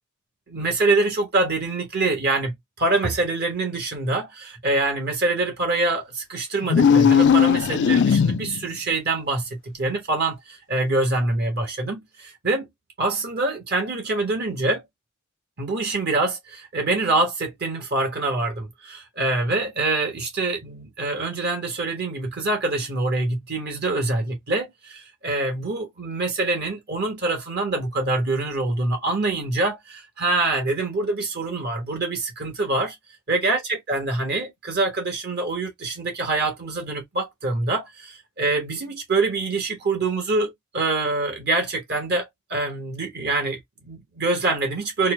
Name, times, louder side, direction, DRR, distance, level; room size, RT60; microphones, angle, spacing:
voice 1, 0.5-12.7 13.0-14.8 15.6-32.9 33.3-45.1, right 2 dB, 50° right, 1.3 m, -25 dB
sound 1, 6.6-8.7, left 7 dB, 55° left, 0.3 m, -17 dB
4.3 x 2.2 x 3.2 m
head